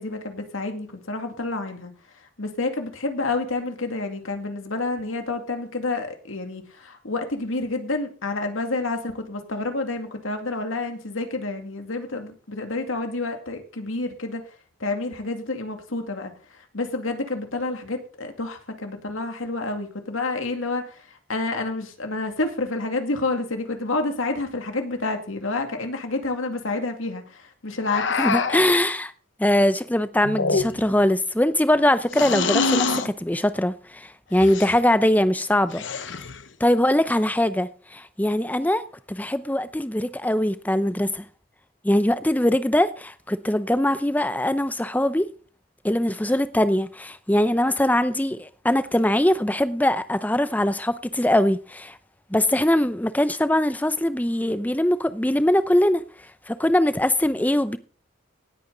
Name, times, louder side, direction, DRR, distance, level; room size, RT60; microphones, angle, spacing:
voice 1, 0.0-14.5 14.8-28.1, left 2 dB, 85° left, 2.3 m, -29 dB
sound 1, 27.8-28.7 30.2-31.0 32.1-33.1 34.4-34.8 35.7-36.4, left 4 dB, 65° left, 1.0 m, -25 dB
voice 2, 28.2-29.1 29.4-35.8 36.6-41.2 41.8-45.3 45.8-52.0 52.3-56.0 56.5-57.8, left 1 dB, 10° left, 0.6 m, -22 dB
18.0 x 8.5 x 3.9 m
head